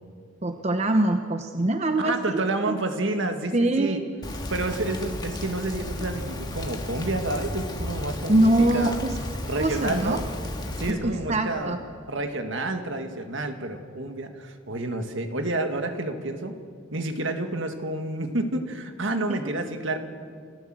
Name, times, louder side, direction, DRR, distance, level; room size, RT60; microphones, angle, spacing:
voice 1, 0.4-2.8 3.5-4.0 8.3-9.2 9.6-10.2 10.9-11.8 19.3-19.4, right 1 dB, 30° right, 7 dB, 0.8 m, -23 dB
voice 2, 2.0-4.0 4.5-9.0 9.4-10.2 10.8-11.8 12.1-16.6 16.9-20.0, right 2 dB, 60° right, 6 dB, 1.8 m, -29 dB
Rain, 4.2-10.9, left 1 dB, 20° left, 1.8 m, -33 dB
28.5 x 14.0 x 7.7 m, 2.1 s
head